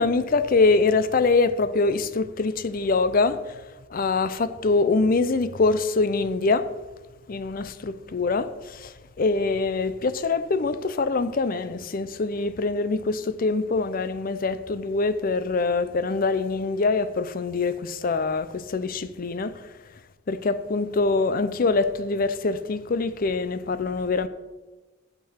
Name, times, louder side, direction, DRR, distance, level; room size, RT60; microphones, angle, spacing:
voice 1, 0.0-3.6 3.9-6.7 7.3-19.7 20.3-24.3, left 3 dB, 45° left, 0.5 m, -24 dB
8.5 x 6.9 x 5.7 m
head